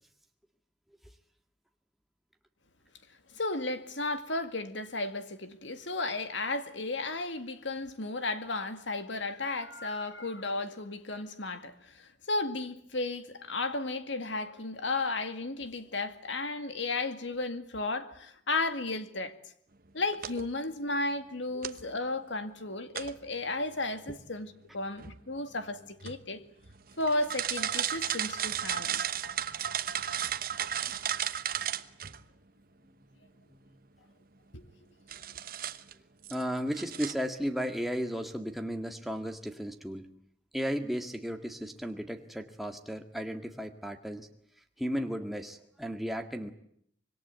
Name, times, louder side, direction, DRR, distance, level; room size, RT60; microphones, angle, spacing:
voice 1, 3.3-19.3 19.9-26.4 27.0-29.0 34.5-34.6, left 2 dB, 75° left, 2.1 m, -34 dB
sound 1, 20.1-20.5 21.6-21.9 22.9-23.3 25.0-25.5 26.0-26.2 26.6-32.2 35.1-35.9 36.2-36.4 36.7-37.1, right 9 dB, 50° right, 1.0 m, -34 dB
voice 2, 36.3-40.1 40.5-44.3 44.8-46.5, equal, ahead, 1.9 m, -34 dB
25.5 x 22.0 x 9.3 m
head